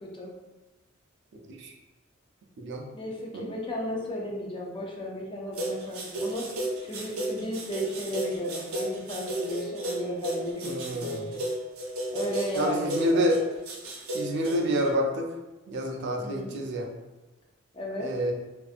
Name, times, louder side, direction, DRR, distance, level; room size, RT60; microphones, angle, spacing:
voice 1, 0.0-0.3 2.9-6.5 6.9-11.3 12.1-13.2 16.2-16.6 17.7-18.1, left 1 dB, 25° left, -2 dB, 0.4 m, -35 dB
voice 2, 2.6-2.9 3.3-3.5 10.6-11.4 12.6-13.4 14.1-15.3 15.7-16.9 18.0-18.3, equal, 55° right, 1 dB, 0.4 m, -28 dB
sound 1, 5.5-14.9, right 1 dB, 90° right, 0.7 m, -33 dB
2.5 x 2.4 x 2.4 m, 1.1 s
head